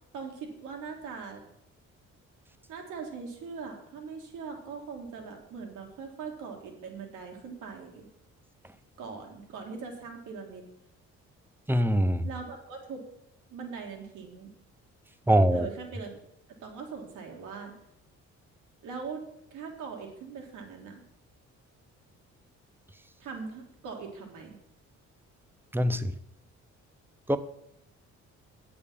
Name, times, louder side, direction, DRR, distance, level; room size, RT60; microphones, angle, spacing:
voice 1, 0.1-1.4 2.7-8.1 9.0-10.6 12.2-13.0 13.5-14.5 15.5-16.1 16.5-17.7 18.8-19.2 19.5-21.0 23.2-24.6, right 5 dB, 90° right, 2 dB, 1.8 m, -41 dB
voice 2, 11.7-12.3 15.3-15.7 25.7-26.1 27.3-27.4, right 1 dB, 5° right, 11 dB, 0.6 m, -23 dB
8.3 x 6.8 x 5.4 m, 0.78 s
cardioid pair, 90°, 30 cm